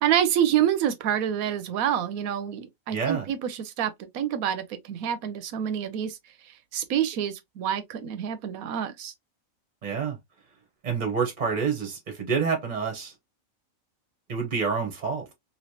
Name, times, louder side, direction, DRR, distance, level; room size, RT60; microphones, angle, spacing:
voice 1, 0.0-6.2 6.4-9.1, right 10 dB, 85° right, 1.1 m, -27 dB
voice 2, 2.9-3.3 9.8-10.2 10.8-13.1 14.3-15.3, right 5 dB, 40° right, 0.8 m, -28 dB
3.1 x 2.7 x 2.6 m
omnidirectional pair, 1.5 m